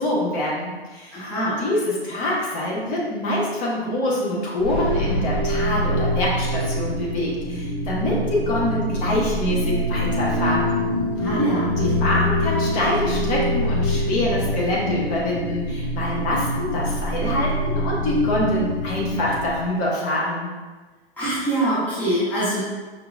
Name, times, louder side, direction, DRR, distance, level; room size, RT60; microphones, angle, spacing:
voice 1, 0.0-1.2 1.6-10.8 11.8-20.5, left 1 dB, 25° left, -4 dB, 0.9 m, -25 dB
voice 2, 1.1-1.6 11.2-11.7 12.0-12.1 21.2-22.6, right 1 dB, 5° left, -10 dB, 0.7 m, -24 dB
sound 1, 4.6-19.5, equal, 80° left, 1.2 m, -25 dB
5.1 x 2.9 x 2.4 m, 1.3 s
figure-of-eight pair, 110°, 31 cm